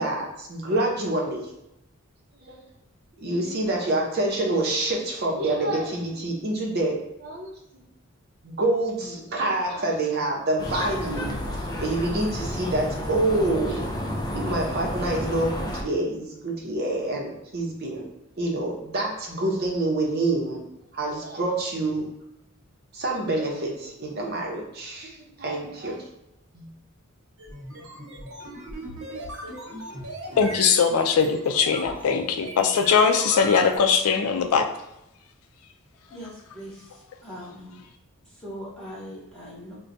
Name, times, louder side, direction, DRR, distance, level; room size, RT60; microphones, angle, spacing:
voice 1, 0.0-1.5 2.4-2.6 3.2-6.9 7.2-7.8 8.4-13.8 14.3-18.0 18.4-20.6 20.9-22.1 22.9-26.0 26.5-26.7, right 2 dB, 50° right, 0.7 m, -27 dB
sound 1, 10.6-15.8, equal, 20° left, 0.4 m, -31 dB
sound 2, 27.4-33.8, right 2 dB, 80° right, 0.9 m, -38 dB
voice 2, 30.4-34.7, left 6 dB, 90° left, 0.4 m, -21 dB
voice 3, 36.1-36.8 37.2-37.8 38.4-39.8, equal, 5° left, 1.0 m, -40 dB
4.3 x 2.2 x 2.6 m
head